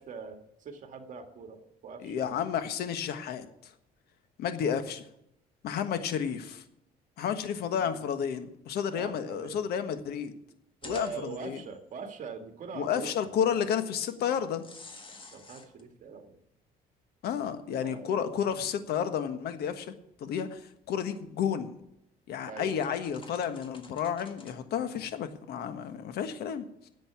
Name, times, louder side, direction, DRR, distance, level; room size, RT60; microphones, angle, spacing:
voice 1, 0.0-2.4 7.7-8.0 8.9-9.5 10.8-13.1 13.5-13.6 15.3-16.4 17.8-18.3 22.5-22.7, right 5 dB, 50° right, 5 dB, 2.0 m, -42 dB
voice 2, 2.0-3.7 4.4-5.0 5.6-6.6 7.2-10.3 10.8-11.6 12.7-14.6 17.2-19.9 20.2-21.7 22.3-26.9, left 8 dB, 70° left, 9 dB, 1.4 m, -31 dB
sound 1, 10.8-11.8 13.7-13.8 14.6-15.8 17.3-17.4 18.0-18.1 18.6-18.7 20.8-21.3 21.8-21.9 22.7-24.6, left 3 dB, 30° left, 1.7 m, -50 dB
10.5 x 8.1 x 9.4 m, 0.78 s
cardioid pair, 110°, 17 cm